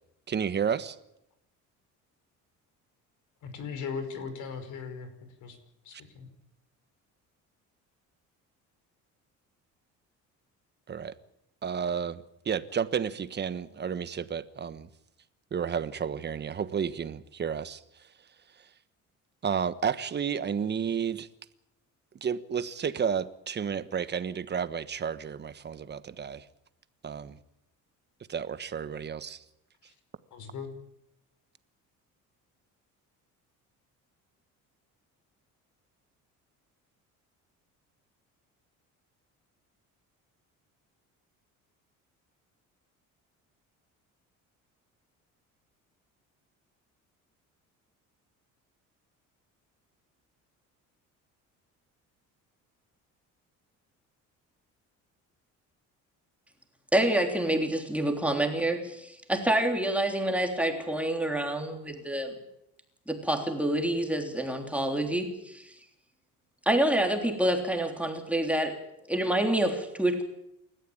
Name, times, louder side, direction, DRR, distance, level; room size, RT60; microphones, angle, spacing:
voice 1, 0.3-1.0 10.9-11.1 11.6-14.9 15.5-17.8 19.4-21.3 22.2-26.4 27.0-27.4 28.3-29.4, right 7 dB, 35° right, 1.3 m, -31 dB
voice 2, 3.4-5.6 5.8-6.3 29.9-30.0 30.3-30.8, left 5 dB, 65° left, 5.3 m, -38 dB
voice 3, 56.9-62.3 63.1-65.7 66.6-68.8 69.1-70.2, right 1 dB, 5° right, 3.4 m, -27 dB
28.5 x 14.0 x 8.8 m
cardioid pair, 130°, 32 cm